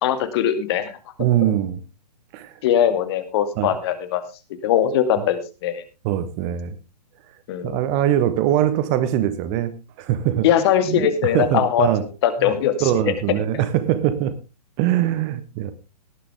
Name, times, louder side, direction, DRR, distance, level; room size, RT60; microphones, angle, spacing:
voice 1, 0.0-0.9 2.6-4.2 4.6-5.8 7.5-7.8 10.4-11.9 12.2-12.7, left 10 dB, 40° left, 10 dB, 2.2 m, -20 dB
voice 2, 1.2-1.8 2.3-2.5 3.6-3.7 6.0-6.8 7.6-10.5 10.9-11.1 11.3-12.0 12.4-12.5 12.8-14.3 14.8-15.7, right 12 dB, 30° right, 13 dB, 1.2 m, -22 dB
18.5 x 9.9 x 3.5 m, 0.29 s
figure-of-eight pair, 120°, 21 cm